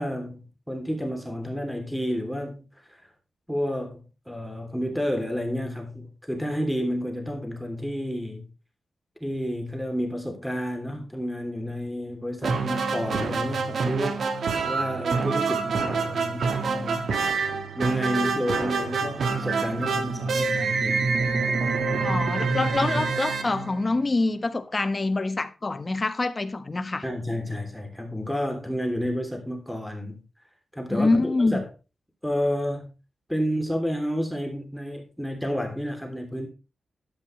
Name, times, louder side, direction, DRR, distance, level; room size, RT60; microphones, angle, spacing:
voice 1, 0.0-3.0 3.5-8.5 9.2-17.2 17.5-21.1 21.9-22.1 27.0-30.2 30.7-31.7 32.2-32.9 33.3-36.5, equal, ahead, 3.2 m, -30 dB
sound 1, 12.4-24.3, right 4 dB, 75° right, 1.8 m, -26 dB
voice 2, 22.0-27.0 30.9-31.6, left 3 dB, 30° left, 1.4 m, -25 dB
12.5 x 9.9 x 3.3 m
cardioid pair, 85°, 0 cm